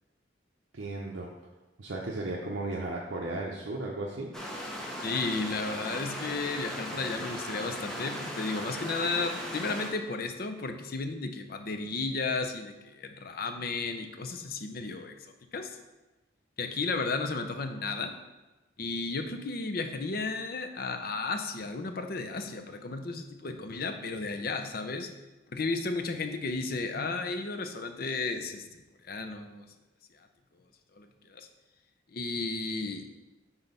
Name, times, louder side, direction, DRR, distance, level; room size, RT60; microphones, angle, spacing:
voice 1, 0.7-1.3 1.8-4.3, right 2 dB, 65° right, -2 dB, 0.7 m, -35 dB
sound 1, 4.3-9.9, equal, 5° left, 0.7 m, -38 dB
voice 2, 5.0-15.1 15.5-15.8 16.6-18.1 18.8-25.1 25.5-28.6 29.0-29.7 31.0-31.5 32.1-33.1, left 3 dB, 50° left, 7 dB, 0.5 m, -33 dB
6.0 x 3.9 x 5.4 m, 1.1 s
head